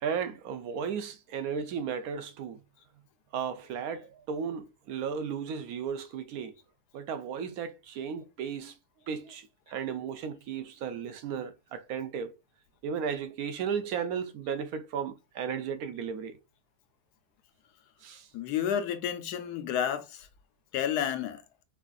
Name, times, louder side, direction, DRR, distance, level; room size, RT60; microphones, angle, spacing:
voice 1, 0.0-2.6 3.3-6.5 6.9-8.7 9.1-12.3 12.8-16.4 18.0-18.3, right 7 dB, 75° right, 1.0 m, -35 dB
voice 2, 18.3-20.3 20.7-21.4, left 9 dB, 80° left, 1.2 m, -30 dB
4.8 x 2.5 x 2.3 m
omnidirectional pair, 1.7 m